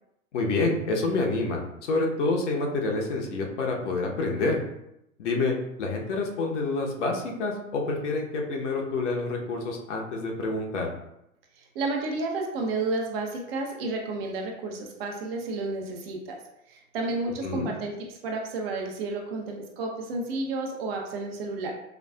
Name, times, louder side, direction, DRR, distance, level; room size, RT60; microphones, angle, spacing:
voice 1, 0.3-4.6 5.2-10.9 17.4-17.7, left 3 dB, 60° left, 0 dB, 0.9 m, -28 dB
voice 2, 11.6-16.4 16.7-21.7, right 3 dB, 45° right, 2 dB, 0.8 m, -31 dB
4.7 x 2.3 x 2.3 m, 0.83 s
hypercardioid pair, 110°, 41 cm